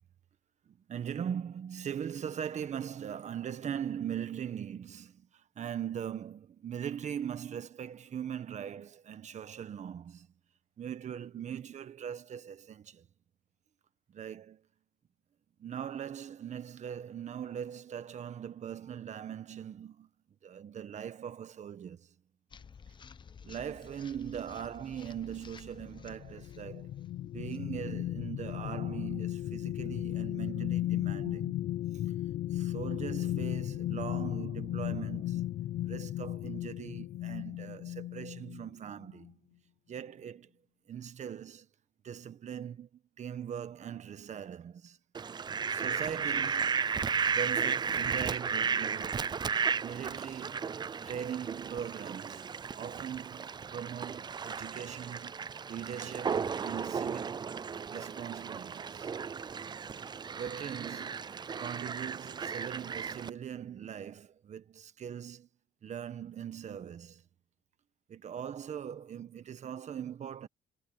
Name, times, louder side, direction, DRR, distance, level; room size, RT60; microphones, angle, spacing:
voice 1, 0.7-10.3 10.8-13.1 14.1-14.6 15.6-20.1 20.4-22.1 23.4-27.1 27.3-31.6 32.5-35.5 35.8-39.3 39.9-40.5 40.9-41.7 42.0-42.9 43.2-45.0 45.7-46.8 47.3-49.3 49.8-50.7 51.0-57.5 57.9-59.1 60.3-61.2 61.6-65.5 65.8-67.2 68.1-70.5, right 8 dB, 45° right, 1.5 m, -41 dB
sound 1, 22.5-28.7, left 6 dB, 30° left, 0.8 m, -53 dB
sound 2, 25.7-38.7 39.1-39.3, left 13 dB, 55° left, 0.6 m, -35 dB
Fowl, 45.1-63.3, right 6 dB, 25° right, 0.5 m, -34 dB
cardioid pair, 110°, 17 cm